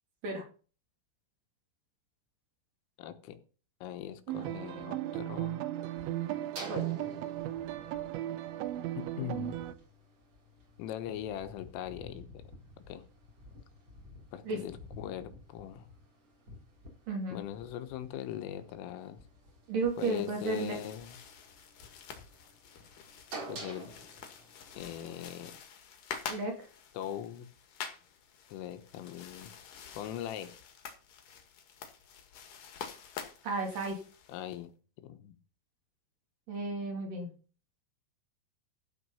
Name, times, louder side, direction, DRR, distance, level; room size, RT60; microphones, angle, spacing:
voice 1, 3.0-3.4 3.8-5.7 9.0-9.6 10.8-12.4 12.9-13.1 14.3-15.9 17.3-19.2 20.0-21.2 23.5-23.9 24.8-25.5 27.0-27.5 28.5-29.5 30.0-30.6 34.3-34.7 35.0-35.4, left 10 dB, 80° left, 10 dB, 3.6 m, -41 dB
sound 1, 4.3-9.7, right 14 dB, 75° right, 3.0 m, -36 dB
sound 2, 5.9-25.6, right 1 dB, 30° right, 4.4 m, -51 dB
voice 2, 17.1-17.4 19.7-20.8 26.3-26.6 33.4-34.0 36.5-37.3, right 3 dB, 50° right, 2 dB, 3.7 m, -33 dB
sound 3, 19.8-34.6, left 7 dB, 55° left, 2.5 m, -47 dB
14.0 x 5.8 x 5.5 m, 0.37 s
omnidirectional pair, 5.9 m